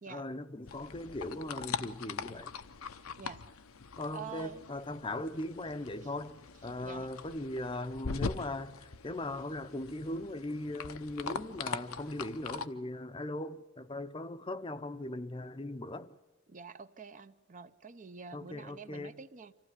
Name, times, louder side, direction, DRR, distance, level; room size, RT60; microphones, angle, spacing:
voice 1, 0.1-2.5 4.0-16.1 18.3-19.1, left 1 dB, 25° left, 0.7 m, -39 dB
sound 1, 0.7-12.7, left 5 dB, 80° left, 0.8 m, -42 dB
voice 2, 4.1-4.6 6.8-7.1 16.5-19.5, right 6 dB, 35° right, 0.7 m, -47 dB
26.0 x 15.5 x 9.8 m
head